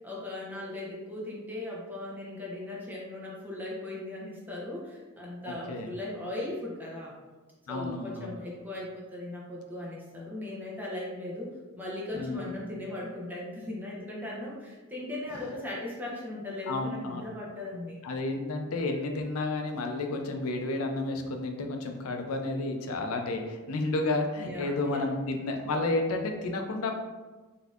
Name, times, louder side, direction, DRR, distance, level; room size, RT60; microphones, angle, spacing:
voice 1, 0.0-7.1 7.7-18.0 24.4-25.1, left 1 dB, 10° right, -4 dB, 0.6 m, -38 dB
voice 2, 7.7-8.3 12.1-12.5 15.3-15.4 16.7-17.2 18.0-26.9, left 2 dB, 85° left, 4 dB, 0.5 m, -31 dB
4.0 x 2.6 x 2.4 m, 1.2 s
head